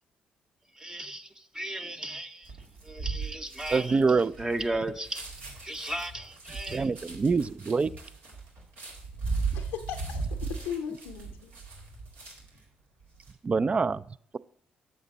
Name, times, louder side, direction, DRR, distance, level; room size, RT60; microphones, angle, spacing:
voice 1, 0.7-2.5 2.8-5.3 5.6-6.9, right 1 dB, 20° right, 0.7 m, -35 dB
sound 1, 2.4-12.6 13.0-13.3, right 4 dB, 75° right, 2.3 m, -37 dB
voice 2, 3.7-4.3 6.7-7.9 13.4-14.0, right 4 dB, 35° right, 0.3 m, -25 dB
voice 3, 9.5-11.5, left 8 dB, 85° left, 0.6 m, -37 dB
7.3 x 7.2 x 3.9 m
hypercardioid pair, 50°, 4 cm